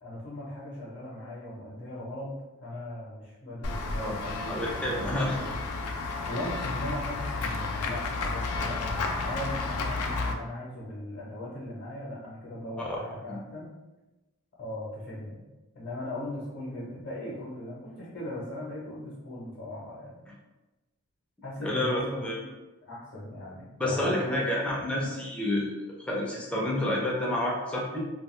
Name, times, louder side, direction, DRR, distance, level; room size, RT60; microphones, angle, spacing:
voice 1, 0.0-5.6 6.3-13.7 14.6-15.5 15.7-20.3 21.4-22.5 22.8-24.6 24.9-25.1, left 1 dB, 50° left, -7 dB, 0.7 m, -38 dB
Run / Walk footsteps / Bell, 3.6-10.3, left 3 dB, 70° left, 0.4 m, -32 dB
voice 2, 4.5-5.4 13.3-13.4 21.6-22.3 23.8-25.7 26.0-28.0, left 1 dB, 5° left, -4 dB, 0.4 m, -29 dB
2.3 x 2.3 x 3.1 m, 1.1 s
head